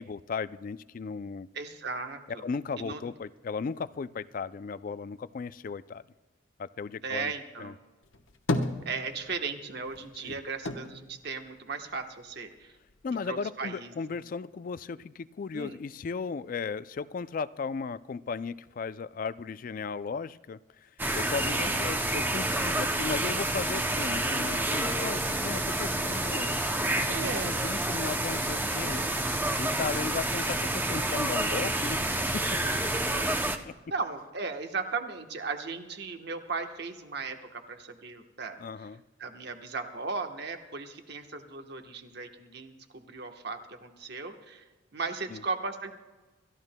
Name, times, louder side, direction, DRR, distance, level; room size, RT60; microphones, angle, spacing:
voice 1, 0.0-1.5 2.4-6.0 6.6-7.3 7.6-7.7 10.2-10.4 13.0-20.9 21.2-26.7 27.0-29.1 29.6-32.0 32.3-32.6 32.9-33.4 33.6-33.7 38.6-39.0 45.3-45.4, left 5 dB, 40° left, 15 dB, 0.3 m, -36 dB
voice 2, 1.5-2.4 2.8-3.0 7.0-7.8 8.8-12.7 13.2-13.9 15.5-15.8 21.5-21.9 27.1-27.6 32.6-32.8 33.2-38.6 39.2-44.6 44.9-45.9, right 4 dB, 55° right, 5 dB, 1.1 m, -37 dB
sound 1, 8.0-9.5 9.8-12.2 12.6-13.5, left 2 dB, 75° left, 1.0 m, -34 dB
sound 2, 21.0-33.6, right 1 dB, 10° right, 0.5 m, -29 dB
27.5 x 14.0 x 2.2 m, 1.3 s
head